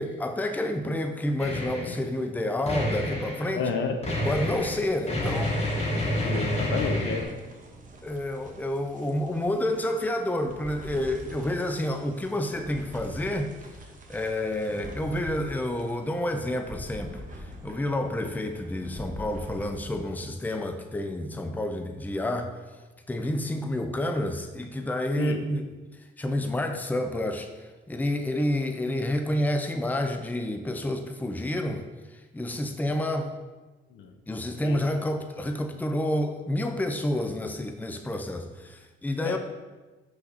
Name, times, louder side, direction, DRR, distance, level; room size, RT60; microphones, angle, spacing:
voice 1, 0.0-3.7 4.2-5.6 6.3-6.4 8.0-13.5 14.1-22.6 23.1-25.6 26.2-31.9 32.1-33.3 34.3-39.4, left 1 dB, 10° left, 6 dB, 0.6 m, -29 dB
sound 1, 1.4-2.0 2.7-3.5 4.0-7.2, left 1 dB, 30° left, 1.7 m, -28 dB
voice 2, 3.5-4.0 6.2-7.3 25.2-25.4 33.9-34.1 34.6-35.0 39.2-39.4, left 5 dB, 75° left, 6 dB, 0.8 m, -31 dB
sound 2, 4.2-20.1, equal, 40° right, 1.1 m, -45 dB
5.8 x 4.0 x 5.6 m, 1.2 s
cardioid pair, 90°, 20 cm